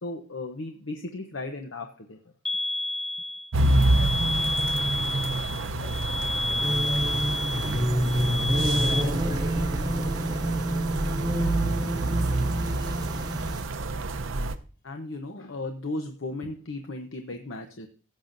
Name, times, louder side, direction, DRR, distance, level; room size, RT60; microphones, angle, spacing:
voice 1, 0.0-2.2 14.8-17.9, left 2 dB, 75° left, 5 dB, 0.9 m, -35 dB
sound 1, 2.4-9.0, left 2 dB, 5° left, 0.4 m, -30 dB
sound 2, 3.5-14.6, right 2 dB, 80° right, 0.7 m, -28 dB
voice 2, 3.9-7.1 7.6-8.3 8.7-11.2, left 1 dB, 55° left, -1 dB, 4.0 m, -50 dB
sound 3, 6.6-13.6, equal, 20° right, 0.9 m, -28 dB
16.5 x 7.4 x 2.6 m, 0.38 s
head